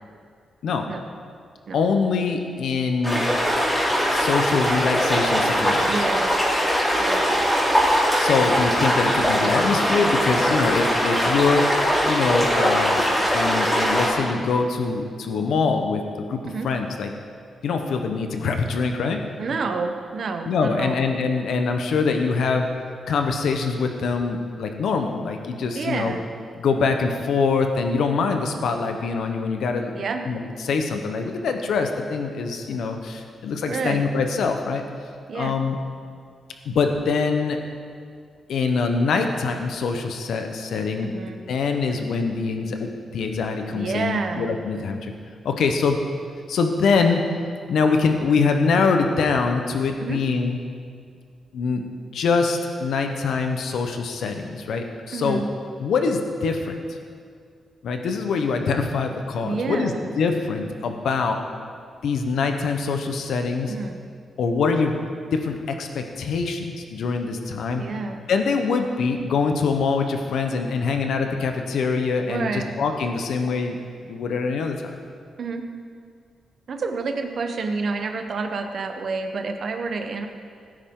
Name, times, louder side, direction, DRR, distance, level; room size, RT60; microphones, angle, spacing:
voice 1, 1.7-3.3 4.1-6.1 8.1-11.7 12.1-13.0 13.3-16.0 16.3-17.1 17.6-19.2 20.5-22.7 23.1-26.1 26.6-34.8 35.3-35.8 36.6-37.6 38.5-41.1 41.5-45.1 45.4-46.0 46.5-47.2 47.7-50.6 51.5-51.8 52.1-55.4 55.8-57.0 57.8-61.4 62.0-63.7 64.4-64.9 65.3-67.9 68.3-73.8 74.0-74.9, left 4 dB, 80° left, 5 dB, 1.0 m, -24 dB
sound 1, 3.0-14.1, equal, 10° left, 3.6 m, -21 dB
voice 2, 5.8-6.3 6.9-7.3 12.9-13.2 16.5-16.7 19.4-21.0 25.7-26.2 29.9-30.2 33.7-34.1 35.3-35.5 41.1-41.4 43.7-44.5 50.0-50.2 55.1-55.5 59.4-60.1 63.7-64.0 67.8-68.2 72.3-72.7 75.4-75.6 76.7-80.3, right 4 dB, 55° right, 6 dB, 1.1 m, -29 dB
17.0 x 9.8 x 3.9 m, 2.2 s
cardioid pair, 125°, 0 cm